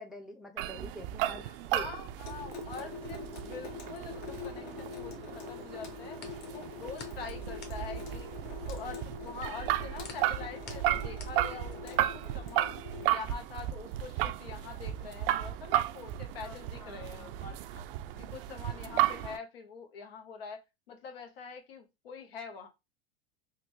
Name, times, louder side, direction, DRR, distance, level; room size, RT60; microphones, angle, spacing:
voice 1, 0.0-1.4 1.7-1.9 3.1-3.3 6.5-6.7 16.4-17.4 18.1-18.2, equal, ahead, 0.4 m, -47 dB
sound 1, 0.6-19.4, right 13 dB, 70° right, 0.4 m, -34 dB
sound 2, 1.2-5.2 5.5-12.1, left 5 dB, 35° left, 1.0 m, -52 dB
voice 2, 1.4-6.2 6.5-8.3 8.7-12.8 13.1-17.9 18.2-22.7, left 5 dB, 90° left, 0.9 m, -45 dB
Water tap faucet / Sink (filling or washing) / Drip, 2.2-13.1, left 5 dB, 65° left, 1.1 m, -44 dB
3.7 x 2.2 x 2.9 m
hypercardioid pair, 105°, 29 cm